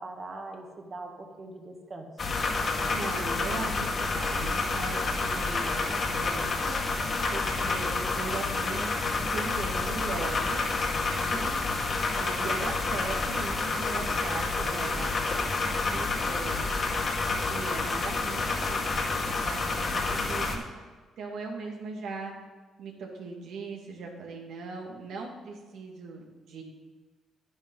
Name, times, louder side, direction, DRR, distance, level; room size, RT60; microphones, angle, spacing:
voice 1, 0.0-2.1 11.3-11.7, right 2 dB, 40° right, 2 dB, 2.0 m, -42 dB
sound 1, 2.2-20.6, left 3 dB, 45° left, 2.1 m, -29 dB
voice 2, 2.9-6.8 7.3-10.7 11.2-11.6 12.2-15.1 15.6-16.7 17.5-20.6 21.2-22.3 22.8-26.6, right 4 dB, 75° right, 0 dB, 2.3 m, -39 dB
10.5 x 9.9 x 3.9 m, 1.3 s
cardioid pair, 80°, 0 cm